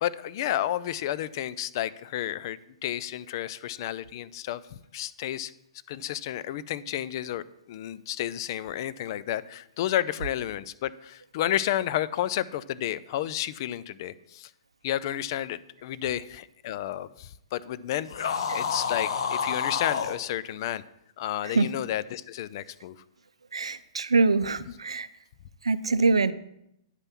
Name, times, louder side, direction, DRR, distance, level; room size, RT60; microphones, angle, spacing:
voice 1, 0.0-5.5 5.9-14.5 14.8-18.1 18.5-20.8 21.2-23.0, left 12 dB, 50° left, 17 dB, 0.5 m, -31 dB
sound 1, 18.1-20.2, left 6 dB, 65° left, 0.9 m, -29 dB
voice 2, 23.5-25.1 25.6-26.3, right 3 dB, 80° right, 15 dB, 0.5 m, -24 dB
9.8 x 5.4 x 6.0 m, 0.78 s
figure-of-eight pair, 115°, 3 cm